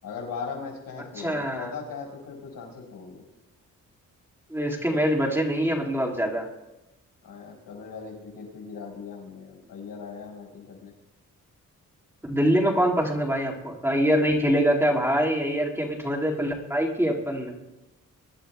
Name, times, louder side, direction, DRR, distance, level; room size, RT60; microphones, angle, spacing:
voice 1, 0.0-3.2 7.2-10.9, left 5 dB, 85° left, 0 dB, 4.8 m, -39 dB
voice 2, 1.2-1.7 4.5-6.5 12.2-17.5, equal, 5° right, -1 dB, 2.0 m, -24 dB
23.5 x 11.5 x 2.3 m, 0.99 s
cardioid pair, 110°, 32 cm